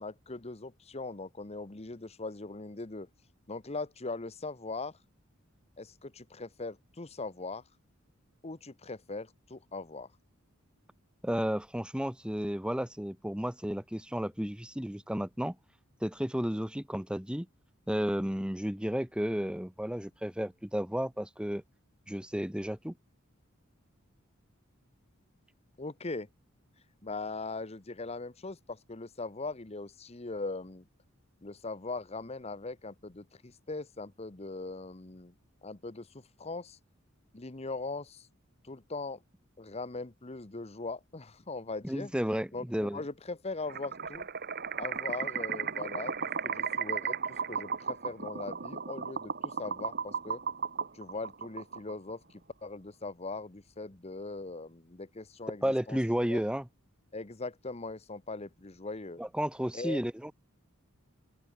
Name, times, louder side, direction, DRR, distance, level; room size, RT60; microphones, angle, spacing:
voice 1, 0.0-3.1 3.5-5.0 5.8-7.6 8.4-10.1 25.8-26.3 27.0-30.8 31.4-35.3 35.6-36.1 36.4-36.8 37.3-38.3 38.6-39.2 39.6-42.1 42.5-44.2 44.8-46.1 46.4-47.2 47.5-50.4 50.9-56.0 56.3-56.5 57.1-59.2 59.7-60.0, left 3 dB, 30° left, 1.0 m, -40 dB
voice 2, 11.2-15.5 16.0-17.5 17.9-21.6 22.1-22.9 41.8-43.0 55.6-56.7 59.2-60.3, equal, 5° right, 1.2 m, -32 dB
sound 1, 43.7-52.1, right 6 dB, 50° right, 2.3 m, -35 dB
open air
head